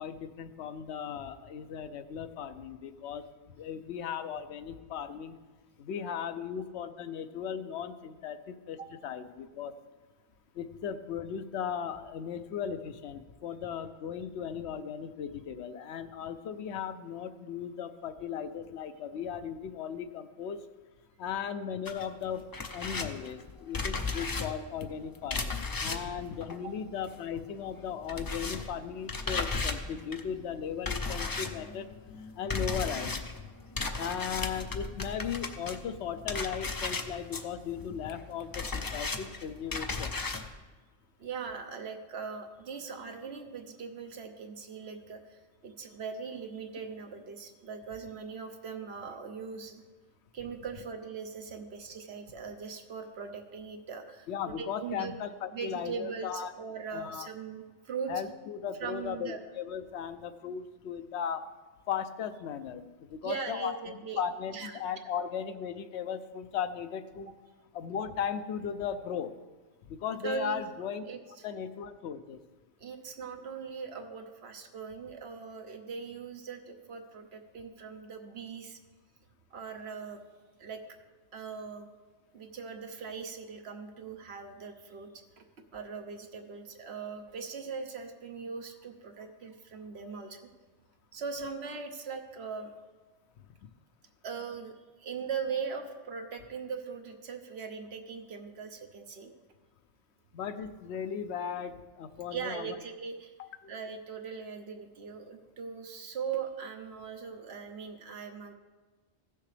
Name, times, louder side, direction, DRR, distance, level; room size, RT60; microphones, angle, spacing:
voice 1, 0.0-5.4 5.8-8.8 9.0-9.7 10.5-20.6 21.2-22.4 22.7-31.9 32.4-33.2 34.0-40.1 54.3-56.5 56.9-57.3 58.1-61.5 61.9-67.3 67.7-69.3 69.9-71.0 71.4-72.4 100.3-102.8 103.4-103.8, left 7 dB, 70° left, 10 dB, 0.9 m, -37 dB
sound 1, 21.9-27.4 27.6-40.5, left 4 dB, 35° left, 0.3 m, -36 dB
voice 2, 41.2-49.8 50.3-54.3 54.6-55.1 55.5-58.1 58.8-59.4 63.2-64.2 64.5-64.7 70.2-70.6 71.0-71.5 72.8-78.8 79.5-80.2 80.6-80.8 81.3-81.9 82.3-85.1 85.4-85.5 85.7-90.4 91.1-92.7 94.2-94.7 95.0-99.3 102.3-103.3 103.7-108.5, right 5 dB, 65° right, 5 dB, 1.2 m, -40 dB
15.5 x 6.7 x 3.3 m, 1.3 s
omnidirectional pair, 1.2 m